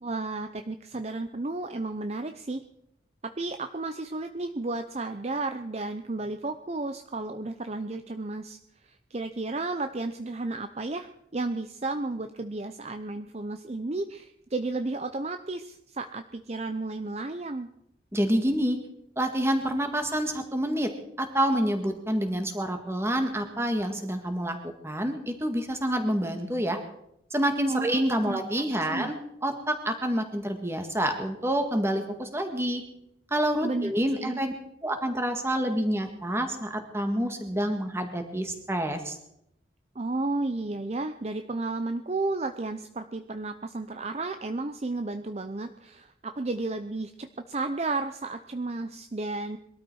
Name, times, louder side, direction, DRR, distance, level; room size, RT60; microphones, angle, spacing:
voice 1, 0.0-2.6 3.2-8.6 8.9-17.7 27.7-28.4 28.9-29.1 33.6-34.4 40.0-49.6, right 2 dB, 35° right, 8 dB, 0.7 m, -33 dB
voice 2, 18.1-18.8 19.2-20.9 21.2-26.8 27.3-29.2 29.4-32.8 33.3-34.5 34.8-39.2, equal, 15° right, 5 dB, 2.0 m, -28 dB
22.0 x 13.0 x 4.8 m, 0.79 s
head